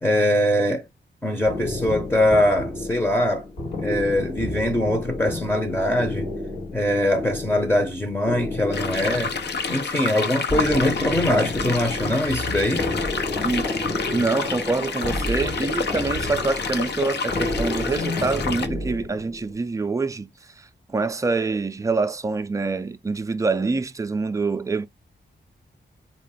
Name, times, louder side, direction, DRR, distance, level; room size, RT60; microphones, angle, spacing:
voice 1, 0.0-0.8 1.2-3.5 3.8-6.3 6.7-9.3 9.7-12.9, left 1 dB, 10° left, 0.7 m, -22 dB
sound 1, 1.4-19.6, left 2 dB, 90° left, 2.7 m, -31 dB
sound 2, 8.7-18.7, left 5 dB, 70° left, 0.7 m, -29 dB
voice 2, 14.1-20.3 20.6-24.9, right 3 dB, 20° right, 0.3 m, -25 dB
4.1 x 2.4 x 3.6 m
wide cardioid pair, 160°, 18 cm